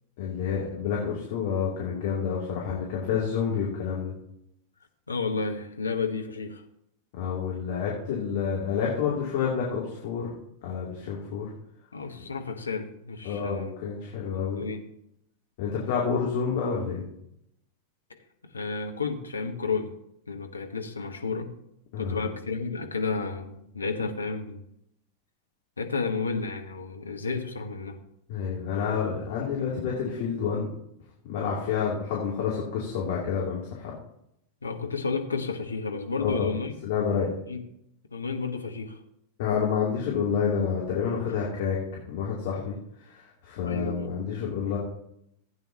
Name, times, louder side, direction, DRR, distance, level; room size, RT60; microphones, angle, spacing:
voice 1, 0.2-4.1 7.2-10.3 10.6-11.5 13.2-14.6 15.6-17.0 21.9-22.2 28.3-30.7 31.2-33.9 36.2-36.5 36.8-37.3 39.4-42.7 43.1-44.8, left 6 dB, 50° left, -4 dB, 2.9 m, -29 dB
voice 2, 5.1-6.6 11.9-13.7 14.5-14.8 18.5-19.9 20.3-21.5 22.0-24.6 25.8-28.0 34.6-36.7 37.5-37.6 38.1-39.0 43.6-44.1, left 4 dB, 75° left, 4 dB, 1.2 m, -31 dB
15.5 x 9.0 x 2.9 m, 0.76 s
figure-of-eight pair, 90°, 0 cm